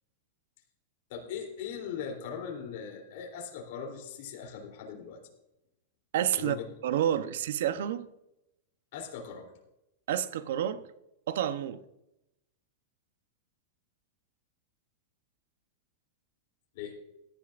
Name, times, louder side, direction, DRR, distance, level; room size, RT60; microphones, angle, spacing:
voice 1, 1.1-5.2 6.3-6.7 8.9-9.5 16.7-17.0, left 7 dB, 55° left, 3.2 m, -39 dB
voice 2, 6.1-6.6 6.8-8.1 10.1-10.9 11.3-11.8, right 10 dB, 70° right, 0.8 m, -29 dB
17.0 x 12.0 x 2.5 m
supercardioid pair, 160°, 0 cm